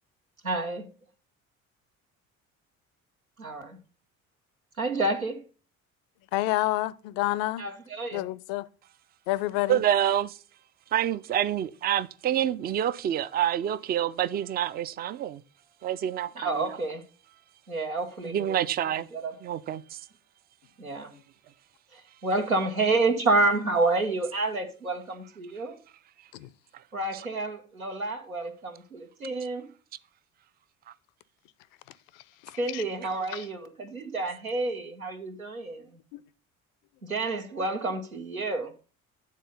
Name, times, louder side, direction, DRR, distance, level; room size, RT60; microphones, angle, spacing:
voice 1, 0.4-0.8 3.4-3.8 4.8-5.4 7.6-8.2 16.4-17.0 17.7-18.6 19.1-19.3 20.8-21.1 21.9-25.8 26.9-29.7 32.6-35.9 37.0-38.7, right 2 dB, 90° right, 0.8 m, -29 dB
voice 2, 6.3-7.6 8.1-8.6 9.3-9.8 26.3-26.5 32.4-32.8 33.3-33.4 36.1-36.2, left 17 dB, 55° left, 0.5 m, -29 dB
voice 3, 9.7-10.4 10.9-15.4 15.8-16.8 18.2-19.1 19.4-20.1 26.7-26.8 27.1-27.3 30.9-31.0, right 11 dB, 25° right, 0.3 m, -27 dB
9.0 x 3.8 x 5.2 m
figure-of-eight pair, 50°, 41 cm